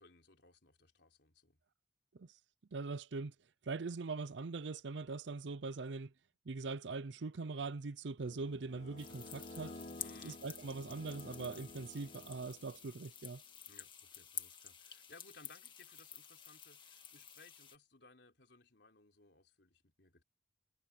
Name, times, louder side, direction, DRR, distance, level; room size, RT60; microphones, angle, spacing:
voice 1, 0.0-1.6 10.0-10.4 13.7-20.2, left 3 dB, 70° left, 3.7 m, -62 dB
voice 2, 2.7-3.3 3.6-6.1 6.5-9.8 10.2-13.4, right 3 dB, 75° right, 0.6 m, -42 dB
sound 1, 8.2-12.9, left 1 dB, 40° left, 1.6 m, -52 dB
sound 2, 9.0-17.8, left 8 dB, 25° left, 1.9 m, -51 dB
head